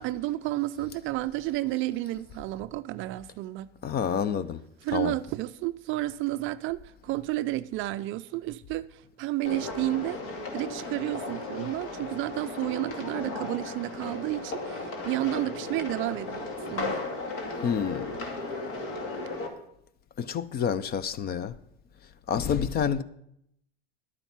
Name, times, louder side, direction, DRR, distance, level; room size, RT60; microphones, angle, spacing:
voice 1, 0.0-3.7 4.8-6.8 7.0-10.2 10.5-16.4 16.7-17.0, right 16 dB, 40° right, 0.4 m, -31 dB
voice 2, 3.8-4.6 4.9-5.1 17.6-18.1 20.2-21.5 22.3-23.0, left 7 dB, 30° left, 0.6 m, -28 dB
sound 1, 9.5-19.5, left 2 dB, 60° left, 2.4 m, -35 dB
11.5 x 8.9 x 5.7 m
hypercardioid pair, 105°, 32 cm